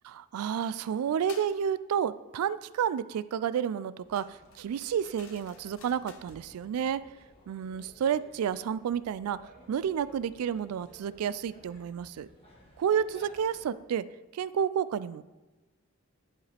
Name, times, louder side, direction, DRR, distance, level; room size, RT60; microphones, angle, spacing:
voice 1, 0.1-7.0 7.5-9.4 9.7-12.3 12.8-14.0 14.3-15.2, right 8 dB, 90° right, 17 dB, 0.3 m, -30 dB
sound 1, 1.3-1.6 4.1-6.4, left 7 dB, 65° left, 0.7 m, -53 dB
sound 2, 4.0-13.6, equal, 25° left, 1.4 m, -56 dB
11.0 x 4.8 x 3.4 m, 1.1 s
head